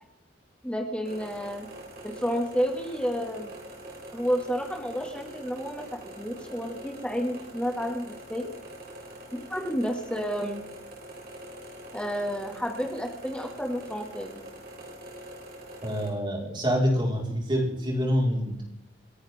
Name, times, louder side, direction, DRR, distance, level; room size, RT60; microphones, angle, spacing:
voice 1, 0.6-1.7 2.0-3.5 4.1-8.5 9.3-10.6 11.9-14.4, equal, 5° left, 1 dB, 2.6 m, -31 dB
sound 1, 1.1-16.1, right 1 dB, 55° right, 4.2 m, -44 dB
voice 2, 15.8-18.6, equal, 25° right, -1 dB, 5.2 m, -26 dB
29.5 x 10.5 x 3.8 m, 0.84 s
head